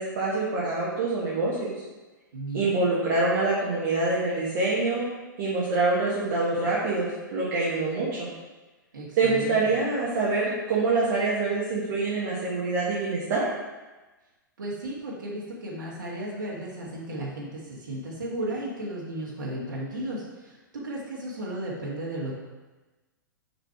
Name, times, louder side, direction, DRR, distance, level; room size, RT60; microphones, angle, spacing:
voice 1, 0.0-1.7 2.5-5.1 5.4-8.3 9.2-13.4, right 3 dB, 45° right, -7 dB, 1.5 m, -25 dB
voice 2, 2.3-2.7 8.9-9.7 14.6-22.3, right 1 dB, 60° right, -5 dB, 1.7 m, -34 dB
6.4 x 4.4 x 4.6 m, 1.2 s
figure-of-eight pair, 105°, 11 cm